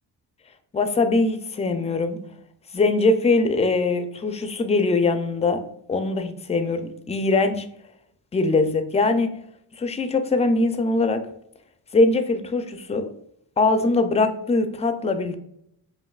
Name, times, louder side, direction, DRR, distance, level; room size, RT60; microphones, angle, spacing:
voice 1, 0.7-2.2 2.7-5.6 5.9-7.7 8.3-9.3 9.8-11.3 11.9-13.1 13.6-15.4, left 3 dB, 15° left, 8 dB, 0.4 m, -22 dB
5.4 x 2.6 x 2.3 m, 0.71 s
cardioid pair, 85°, 45 cm